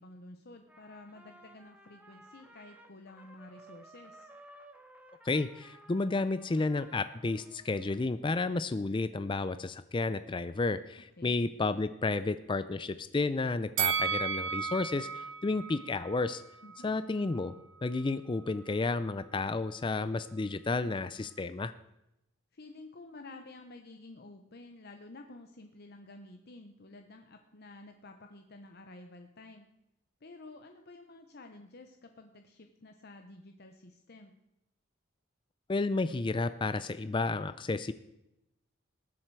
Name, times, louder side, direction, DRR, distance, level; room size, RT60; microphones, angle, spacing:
voice 1, 0.0-4.3 11.2-11.4 16.6-16.9 22.5-29.7 30.2-34.3, left 2 dB, 50° left, 5 dB, 0.8 m, -51 dB
Trumpet, 0.7-8.0, right 1 dB, 5° right, 1.1 m, -56 dB
voice 2, 5.2-16.4 16.8-17.5 17.8-21.7 35.7-37.9, left 3 dB, 25° left, 13 dB, 0.4 m, -31 dB
Bell, 13.8-17.0 17.3-17.4, right 7 dB, 65° right, 0.6 m, -34 dB
19.5 x 7.5 x 4.7 m, 0.88 s
head